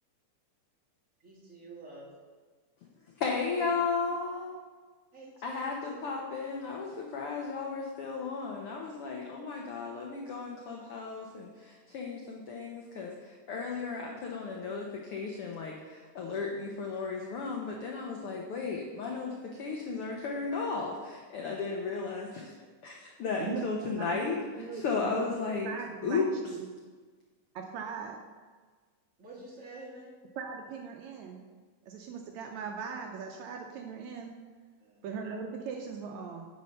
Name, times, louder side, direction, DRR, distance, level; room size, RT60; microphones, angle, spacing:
voice 1, 1.2-2.1 5.1-6.0 29.2-30.1 34.8-35.1, right 2 dB, 30° right, -6 dB, 2.2 m, -48 dB
voice 2, 3.2-4.5 5.4-22.5 22.8-24.4 24.7-25.7 26.0-26.3, left 4 dB, 75° left, 0 dB, 1.3 m, -34 dB
voice 3, 23.4-25.2 25.6-26.7 27.6-28.2 30.4-31.4 31.9-34.3 35.0-36.5, right 6 dB, 75° right, 3 dB, 1.8 m, -40 dB
9.5 x 4.3 x 6.6 m, 1.4 s
omnidirectional pair, 3.6 m